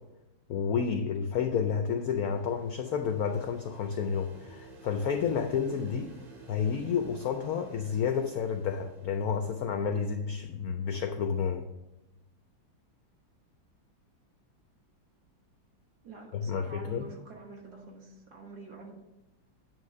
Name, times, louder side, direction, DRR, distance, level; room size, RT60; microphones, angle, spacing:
voice 1, 0.5-6.1 6.5-11.7 16.3-17.1, left 6 dB, 75° left, 5 dB, 0.8 m, -30 dB
sound 1, 1.6-10.2, right 3 dB, 70° right, 2.4 m, -52 dB
voice 2, 16.0-18.9, right 3 dB, 55° right, -1 dB, 1.9 m, -47 dB
9.1 x 3.1 x 6.4 m, 1.0 s
omnidirectional pair, 2.1 m